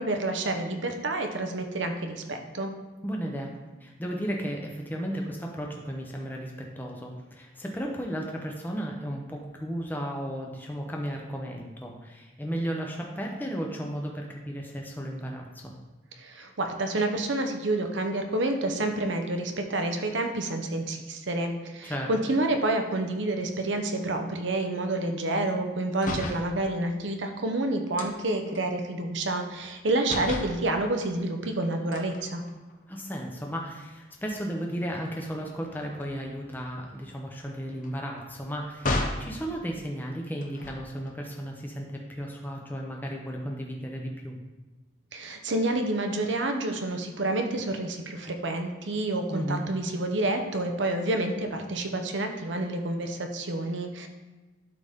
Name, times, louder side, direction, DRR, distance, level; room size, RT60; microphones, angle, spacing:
voice 1, 0.0-2.7 16.2-32.4 45.1-54.1, right 2 dB, 80° right, 5 dB, 0.9 m, -29 dB
voice 2, 3.0-3.5 3.8-15.7 21.8-22.1 32.9-44.4 49.3-49.7, equal, 10° left, 0 dB, 0.9 m, -34 dB
sound 1, 25.9-26.5 28.0-29.8 30.0-30.6 31.9-32.9 33.4-33.6 33.9-39.3 40.4-41.1, left 2 dB, 45° left, 0.7 m, -36 dB
12.0 x 4.0 x 3.7 m, 1.2 s
head